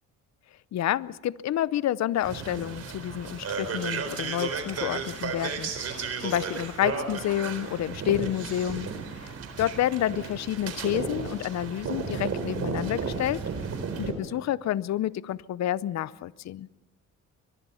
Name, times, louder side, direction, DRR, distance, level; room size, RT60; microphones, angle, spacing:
voice 1, 0.7-13.4 14.0-16.7, left 12 dB, 60° left, 19 dB, 0.7 m, -29 dB
sound 1, 2.2-14.1, right 5 dB, 55° right, 4.1 m, -34 dB
sound 2, 4.5-13.8, right 4 dB, 80° right, 7.6 m, -51 dB
23.5 x 22.5 x 5.7 m, 1.0 s
cardioid pair, 90°, 30 cm